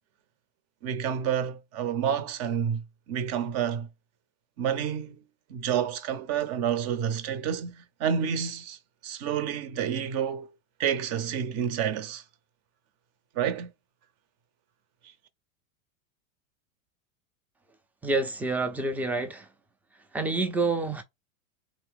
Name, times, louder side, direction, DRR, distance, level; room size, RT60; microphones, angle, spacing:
voice 1, 0.8-3.9 4.6-5.2 5.5-8.8 9.0-10.5 10.8-12.2 13.3-13.7, right 8 dB, 40° right, 0.7 m, -29 dB
voice 2, 18.0-19.5 20.1-21.0, right 3 dB, 5° right, 0.4 m, -28 dB
3.5 x 2.7 x 3.5 m
supercardioid pair, 130°, 39 cm